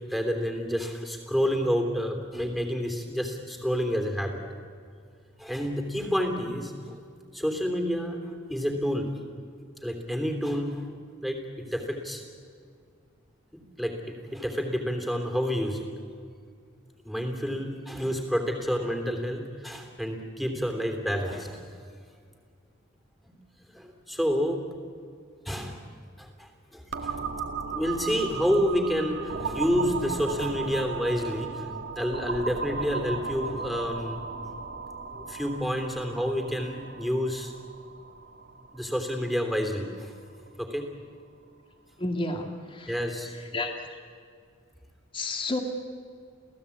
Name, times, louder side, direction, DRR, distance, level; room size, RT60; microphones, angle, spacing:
voice 1, 0.1-4.4 5.4-6.9 7.3-8.2 8.5-9.1 9.8-10.8 11.2-12.2 13.5-15.8 17.0-21.6 23.7-24.6 25.4-25.8 26.2-27.1 27.7-31.7 32.0-34.2 35.1-37.5 38.7-40.1 40.6-40.9 42.9-43.3, equal, ahead, 4 dB, 3.2 m, -29 dB
sound 1, 26.9-40.5, right 4 dB, 65° right, 1.8 m, -36 dB
voice 2, 42.0-43.0 43.3-44.0 45.1-45.6, left 2 dB, 25° left, 4 dB, 2.1 m, -32 dB
29.5 x 16.5 x 8.6 m, 2.2 s
head